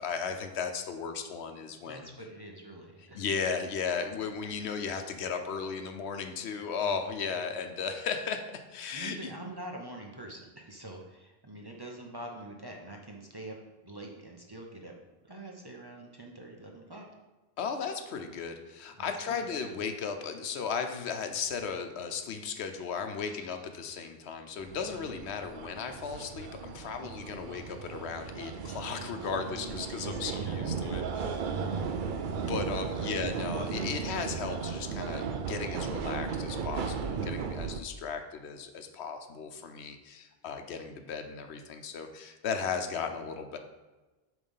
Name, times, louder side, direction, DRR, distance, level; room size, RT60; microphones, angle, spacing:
voice 1, 0.0-2.1 3.1-9.3 17.6-31.5 32.5-43.6, left 6 dB, 80° left, 6 dB, 1.0 m, -36 dB
voice 2, 1.7-3.2 6.7-7.0 8.9-13.6 13.8-14.9 15.2-17.0 19.0-19.7 23.2-23.5 24.9-25.2 27.0-27.2 29.5-30.7 31.5-31.9 32.9-33.5, right 1 dB, 25° right, 0 dB, 0.7 m, -45 dB
sound 1, 24.6-37.8, right 6 dB, 60° right, 0.6 m, -35 dB
8.6 x 3.2 x 5.5 m, 1.2 s
omnidirectional pair, 1.1 m